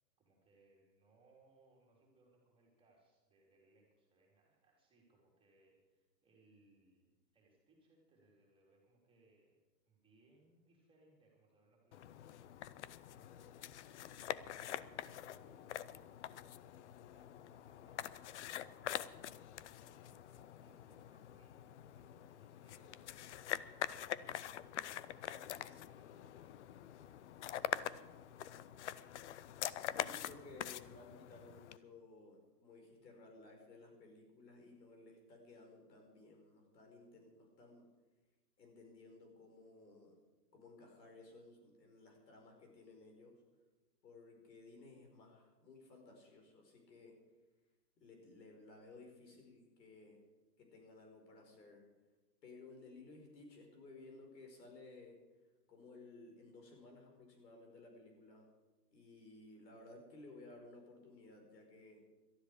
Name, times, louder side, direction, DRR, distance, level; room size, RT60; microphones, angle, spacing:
voice 1, 0.2-19.0 19.6-28.9, right 2 dB, 10° right, -2 dB, 3.5 m, -71 dB
sound 1, 11.9-31.8, left 12 dB, 45° left, 0.6 m, -45 dB
voice 2, 29.7-37.8 38.6-40.2 40.5-43.3 44.0-47.1 48.0-50.2 50.6-51.8 52.4-55.2 55.7-58.4 58.9-62.0, left 2 dB, 75° left, 2 dB, 5.3 m, -57 dB
18.5 x 13.0 x 5.0 m, 1.2 s
hypercardioid pair, 145°, 50 cm